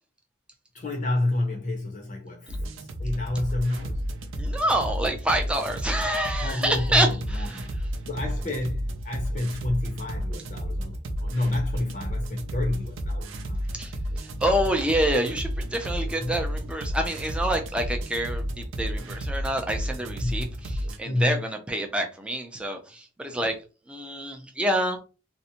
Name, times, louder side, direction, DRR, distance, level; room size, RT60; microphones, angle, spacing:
voice 1, 0.7-2.6 3.0-4.0 6.4-7.7 8.1-13.7 16.2-16.4 20.2-20.8 21.0-21.4, left 2 dB, 40° left, 0.6 m, -29 dB
sound 1, 2.5-21.0, equal, 80° right, 0.5 m, -32 dB
voice 2, 4.4-7.6 13.8-13.9 14.2-23.6 23.9-25.0, right 1 dB, 5° right, 0.4 m, -27 dB
2.6 x 2.1 x 2.8 m
head